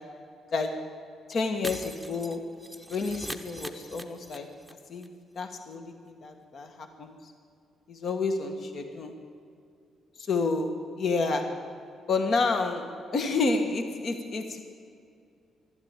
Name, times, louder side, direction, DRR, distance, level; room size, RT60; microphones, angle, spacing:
voice 1, 1.3-2.4 2.9-4.5 4.9-5.1 5.3-7.1 7.9-9.1 10.2-11.4 12.1-14.6, left 3 dB, 55° left, 5 dB, 1.4 m, -29 dB
Shatter, 1.6-4.7 5.0-5.1 5.4-5.5, equal, 5° left, 0.9 m, -41 dB
12.5 x 11.5 x 8.9 m, 2.3 s
cardioid pair, 90°, 0 cm